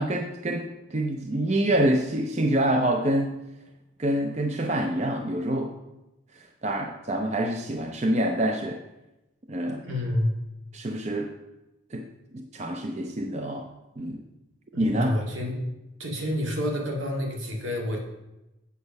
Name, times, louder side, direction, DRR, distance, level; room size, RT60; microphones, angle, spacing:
voice 1, 0.0-3.4 4.0-5.7 6.4-8.8 9.5-9.9 10.7-11.3 11.9-12.1 12.3-13.7 14.0-14.2 14.8-15.2, right 1 dB, 35° right, 4 dB, 0.6 m, -26 dB
voice 2, 9.8-10.4 14.7-15.6 16.0-18.0, left 1 dB, 80° right, 0 dB, 2.2 m, -28 dB
8.4 x 7.0 x 5.3 m, 0.96 s
head